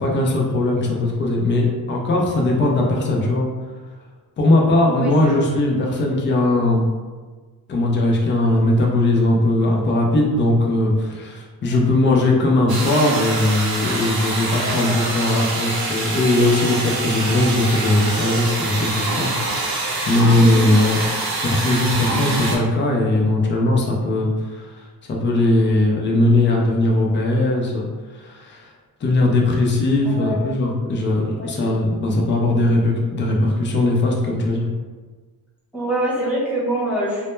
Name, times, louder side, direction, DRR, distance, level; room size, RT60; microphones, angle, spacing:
voice 1, 0.0-3.5 4.4-6.9 7.7-19.3 20.0-21.0 21.4-27.9 28.1-28.7 29.0-34.7, left 2 dB, 30° left, -1 dB, 0.4 m, -19 dB
voice 2, 4.8-5.3 11.6-11.9 14.6-15.0 20.4-20.7 30.0-30.4 31.4-31.7 35.7-37.3, right 1 dB, 5° right, -9 dB, 0.7 m, -26 dB
sound 1, 12.7-22.6, right 2 dB, 70° right, 0.7 m, -25 dB
2.1 x 2.1 x 3.0 m, 1.4 s
wide cardioid pair, 130°, 39 cm